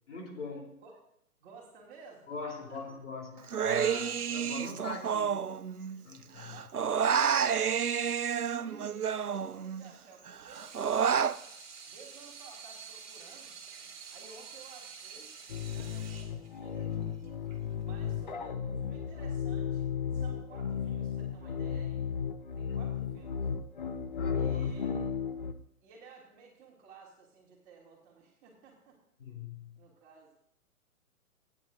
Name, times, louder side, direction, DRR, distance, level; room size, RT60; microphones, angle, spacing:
voice 1, 0.1-0.7 2.3-5.4 6.0-6.6 22.7-22.9 24.2-24.6 29.2-29.9, left 4 dB, 55° left, 0 dB, 3.7 m, -42 dB
voice 2, 1.4-2.8 6.4-11.6 11.8-13.5 14.1-15.3 15.7-17.2 17.8-22.2 22.5-23.4 24.3-25.1 25.8-29.0 29.8-30.3, right 4 dB, 20° right, -2 dB, 2.6 m, -55 dB
Human voice, 3.5-6.1 6.4-9.9 10.3-11.4, right 7 dB, 85° right, 0.6 m, -30 dB
Water tap faucet / Sink (filling or washing), 10.3-18.3, right 6 dB, 45° right, 2.3 m, -49 dB
sound 1, 15.5-25.5, left 7 dB, 35° left, 0.7 m, -34 dB
29.0 x 9.8 x 2.6 m, 0.76 s
figure-of-eight pair, 130°, 44 cm